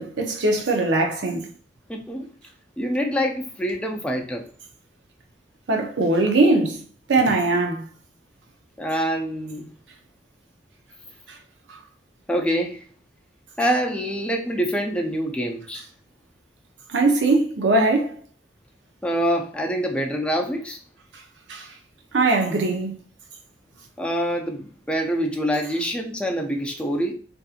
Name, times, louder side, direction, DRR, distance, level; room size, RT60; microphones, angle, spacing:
voice 1, 0.0-1.5 5.7-6.8 7.1-7.8 11.3-11.4 16.9-18.2 21.5-21.7 22.1-23.0, right 2 dB, 90° right, 0.6 m, -21 dB
voice 2, 1.9-2.3 2.8-4.4 8.8-9.7 12.3-12.8 13.6-15.8 19.0-20.8 24.0-27.1, equal, 5° left, 0.3 m, -25 dB
2.6 x 2.6 x 2.4 m
head